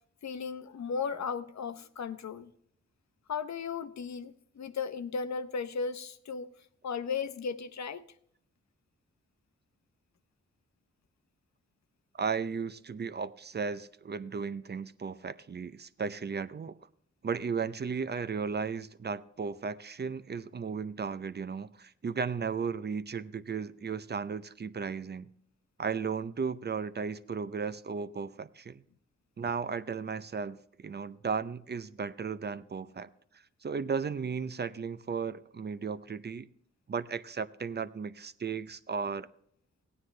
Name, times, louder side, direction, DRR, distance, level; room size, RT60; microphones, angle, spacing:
voice 1, 0.2-2.5 3.3-6.5 6.8-8.0, left 5 dB, 65° left, 0.8 m, -36 dB
voice 2, 12.2-16.8 17.2-25.3 25.8-28.8 29.4-33.1 33.6-36.5 36.9-39.3, right 5 dB, 35° right, 0.5 m, -35 dB
16.0 x 9.6 x 3.2 m
cardioid pair, 75°, 29 cm